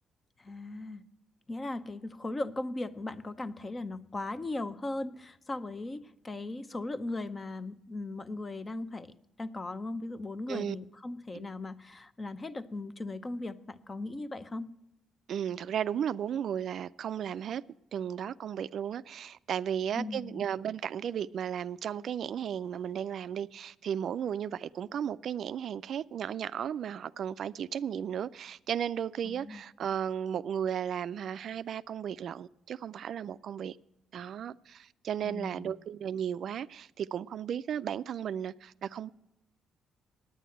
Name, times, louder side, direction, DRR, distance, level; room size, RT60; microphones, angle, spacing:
voice 1, 0.4-1.0 1.5-9.1 9.4-14.7 20.0-20.4 29.2-29.6 35.2-35.7, left 2 dB, 25° left, 0.7 m, -38 dB
voice 2, 15.3-17.6 17.9-33.8 34.1-39.1, right 9 dB, 65° right, 0.3 m, -35 dB
9.3 x 9.2 x 7.7 m
cardioid pair, 90°, 0 cm